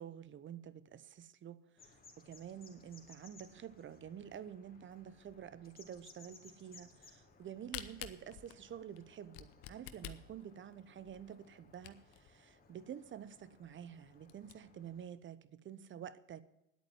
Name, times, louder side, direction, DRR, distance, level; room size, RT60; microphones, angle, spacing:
voice 1, 0.0-16.4, right 9 dB, 40° right, 0.9 m, -49 dB
sound 1, 1.8-15.0, left 4 dB, 30° left, 3.4 m, -63 dB
Camera, 7.3-12.3 12.8-12.9 13.1-13.2 13.7-13.8 14.1-14.5, left 13 dB, 80° left, 1.1 m, -49 dB
10.5 x 8.6 x 7.8 m
supercardioid pair, 90°, 30 cm